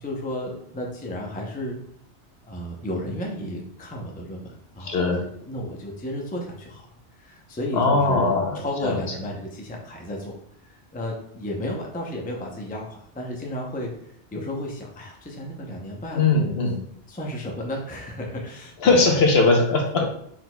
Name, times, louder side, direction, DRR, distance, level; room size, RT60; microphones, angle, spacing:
voice 1, 0.0-1.8 2.4-6.8 7.2-10.3 10.9-13.9 14.3-16.3 17.1-18.7 19.1-19.2 20.0-20.1, left 1 dB, 10° left, -1 dB, 0.5 m, -33 dB
voice 2, 4.8-5.2 7.7-8.6 8.8-9.0 16.2-16.8 18.8-20.0, left 3 dB, 65° left, 2 dB, 1.0 m, -20 dB
4.4 x 4.1 x 2.2 m, 0.68 s
omnidirectional pair, 1.1 m